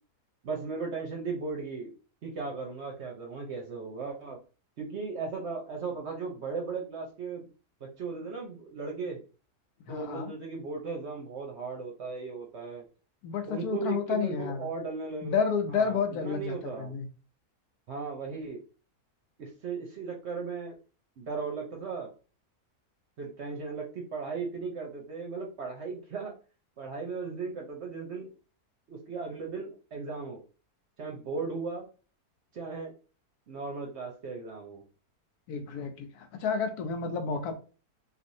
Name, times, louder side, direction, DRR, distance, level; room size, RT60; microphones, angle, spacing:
voice 1, 0.4-1.9 2.2-4.4 4.8-7.5 7.8-9.2 9.9-12.8 13.4-15.4 15.7-16.9 17.9-18.6 19.4-20.7 21.2-22.1 23.2-26.3 26.8-28.3 28.9-30.4 31.0-31.9 32.5-32.9 33.5-34.8, right 4 dB, 55° right, 1 dB, 0.8 m, -36 dB
voice 2, 9.9-10.3 13.2-14.7 15.2-17.1 35.5-37.5, left 6 dB, 85° left, 6 dB, 1.2 m, -30 dB
3.3 x 2.6 x 2.6 m, 0.36 s
omnidirectional pair, 1.6 m